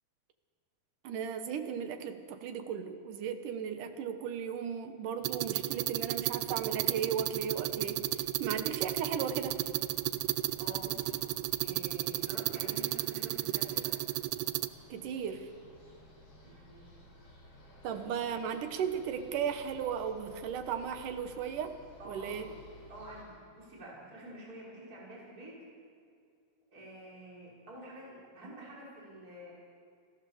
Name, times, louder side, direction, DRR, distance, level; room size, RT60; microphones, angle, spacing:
voice 1, 1.0-8.0 8.4-9.6 14.9-15.5 17.8-21.8 22.1-22.5, right 7 dB, 65° right, 8 dB, 2.5 m, -36 dB
sound 1, 5.2-23.2, left 1 dB, 40° left, 5.6 m, -55 dB
sound 2, 5.2-14.7, right 17 dB, 85° right, 2.6 m, -33 dB
voice 2, 10.6-11.3 11.6-14.0 16.4-17.0 17.9-18.1 22.0-22.6 22.9-25.7 26.7-29.5, right 1 dB, 20° right, -5 dB, 5.5 m, -48 dB
29.0 x 15.0 x 7.2 m, 2.3 s
omnidirectional pair, 4.6 m